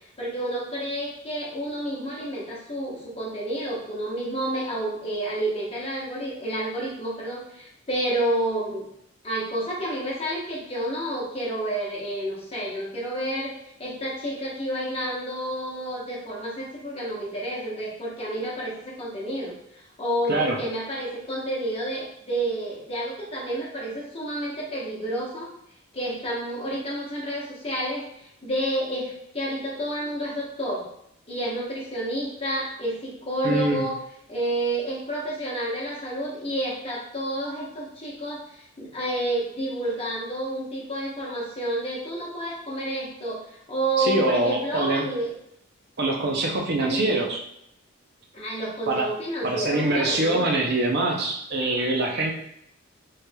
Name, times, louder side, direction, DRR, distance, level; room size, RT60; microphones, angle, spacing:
voice 1, 0.2-8.8 9.2-25.5 25.9-30.9 31.3-34.0 34.3-43.4 43.7-45.3 46.8-47.1 48.3-50.6, right 1 dB, 30° left, -5 dB, 1.0 m, -30 dB
voice 2, 33.4-33.9 44.0-45.1 46.0-47.4 48.9-49.1 49.4-52.3, right 2 dB, 50° right, 0 dB, 0.6 m, -24 dB
4.4 x 3.2 x 2.2 m, 0.76 s
head